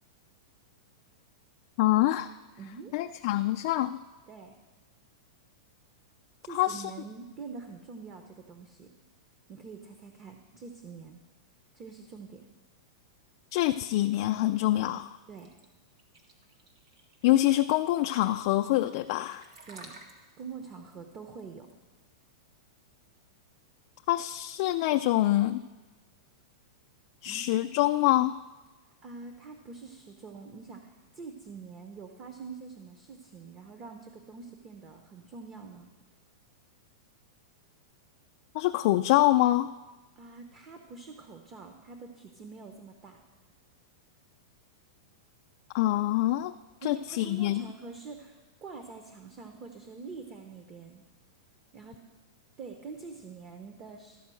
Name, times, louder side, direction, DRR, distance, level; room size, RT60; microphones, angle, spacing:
voice 1, 1.8-2.3 2.9-4.0 6.5-6.9 13.5-15.2 17.2-19.4 24.1-25.6 27.2-28.3 38.5-39.7 45.7-46.5 46.8-47.6, left 15 dB, 50° left, 5 dB, 0.3 m, -25 dB
voice 2, 2.6-2.9 3.2-3.3 4.3-4.5 6.4-8.9 9.5-11.2 11.7-12.5 15.3-15.5 19.7-20.0 20.4-21.7 27.2-27.5 28.9-35.9 40.2-43.2 46.8-51.0 51.7-52.0 52.6-54.2, right 4 dB, 30° right, 5 dB, 0.8 m, -45 dB
sound 1, 15.4-23.1, right 3 dB, 80° right, 1.7 m, -54 dB
13.0 x 4.6 x 7.6 m, 1.2 s
supercardioid pair, 150°, 3 cm